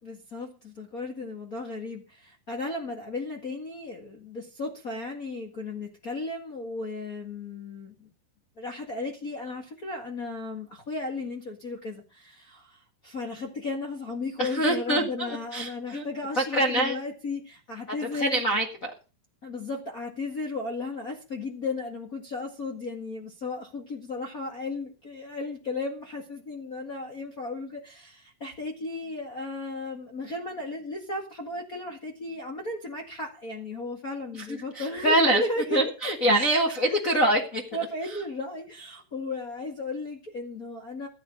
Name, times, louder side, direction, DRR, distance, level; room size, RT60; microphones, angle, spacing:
voice 1, 0.0-8.1 8.6-18.4 19.4-35.9 36.3-36.6 36.9-37.1 37.7-41.1, left 2 dB, 50° left, 0 dB, 1.0 m, -35 dB
voice 2, 14.4-16.0 16.4-17.0 18.1-18.9 34.5-35.4 35.7-37.6, right 1 dB, 90° left, 0 dB, 0.7 m, -24 dB
14.0 x 9.6 x 5.3 m, 0.33 s
omnidirectional pair, 4.8 m